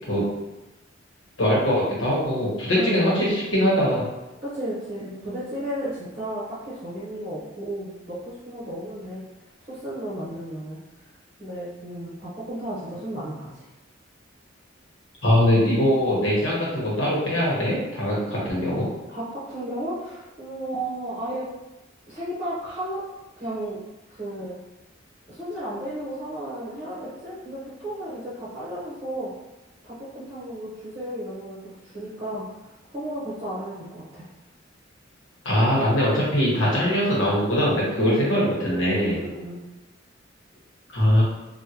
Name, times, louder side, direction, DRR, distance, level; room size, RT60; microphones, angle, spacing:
voice 1, 1.4-4.0 15.2-18.9 35.4-39.2 40.9-41.2, equal, 70° left, -6 dB, 1.1 m, -22 dB
voice 2, 2.7-3.2 4.4-9.2 9.7-10.8 11.4-13.6 19.1-21.5 22.1-23.0 23.4-23.8 24.1-24.5 25.3-29.3 29.8-31.6 31.8-32.4 32.9-34.3 38.0-38.9 39.2-39.6, right 1 dB, 30° right, -9 dB, 0.8 m, -33 dB
3.6 x 2.2 x 2.8 m, 1.0 s
head